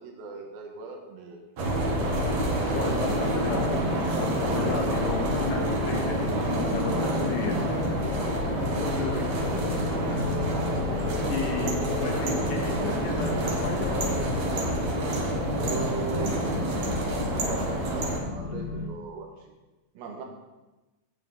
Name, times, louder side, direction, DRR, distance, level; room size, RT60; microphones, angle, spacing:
voice 1, 0.0-1.4 1.8-2.2 9.5-9.9 11.1-12.1 15.6-19.5 19.9-20.3, right 4 dB, 90° right, 2 dB, 2.9 m, -39 dB
sound 1, 1.6-18.2, right 1 dB, 60° right, 2.2 m, -28 dB
sound 2, 1.9-18.9, left 5 dB, 90° left, 1.3 m, -34 dB
voice 2, 2.7-3.8 4.2-7.6 8.7-9.4 11.3-14.2, left 4 dB, 70° left, 1 dB, 2.6 m, -33 dB
9.9 x 8.5 x 3.6 m, 1.1 s
omnidirectional pair, 4.2 m